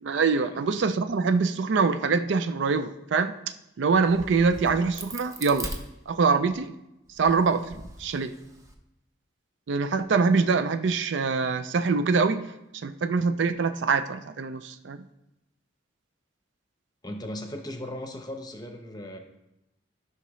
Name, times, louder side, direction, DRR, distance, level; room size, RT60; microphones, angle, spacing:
voice 1, 0.0-3.3 3.8-5.7 6.1-6.7 7.2-8.3 9.7-12.4 12.7-15.0, right 4 dB, 65° right, 11 dB, 0.4 m, -24 dB
Crack, 3.9-6.6 7.1-8.7, right 1 dB, 15° right, 0.7 m, -40 dB
voice 2, 17.0-19.2, left 1 dB, 20° left, 4 dB, 0.8 m, -37 dB
12.0 x 5.6 x 3.1 m, 0.90 s
head